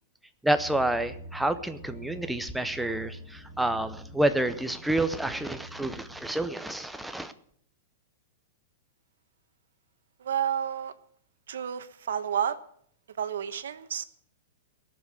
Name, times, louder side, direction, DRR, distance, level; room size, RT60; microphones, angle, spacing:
voice 1, 0.4-7.3, right 1 dB, ahead, 10 dB, 0.7 m, -29 dB
sound 1, 0.5-6.3, right 1 dB, 25° left, 2.4 m, -45 dB
voice 2, 10.2-10.9 11.5-12.6 13.2-14.0, right 9 dB, 80° right, 12 dB, 1.1 m, -30 dB
17.5 x 7.4 x 7.9 m, 0.63 s
supercardioid pair, 170°, 0 cm